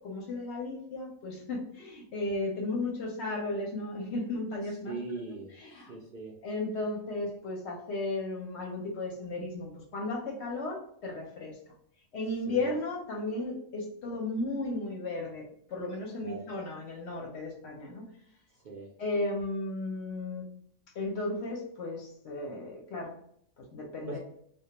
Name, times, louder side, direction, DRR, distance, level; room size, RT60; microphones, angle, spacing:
voice 1, 0.0-5.0 5.5-5.9 6.4-11.6 12.1-15.4 15.7-18.0 19.0-20.5 20.9-23.1 23.7-24.2, left 2 dB, 65° left, -1 dB, 0.7 m, -35 dB
voice 2, 4.8-5.6 5.9-6.3 12.5-12.7 16.2-16.4 18.6-18.9 24.1-24.2, right 3 dB, 60° right, -4 dB, 0.5 m, -40 dB
2.2 x 2.2 x 2.8 m, 0.68 s
omnidirectional pair, 1.4 m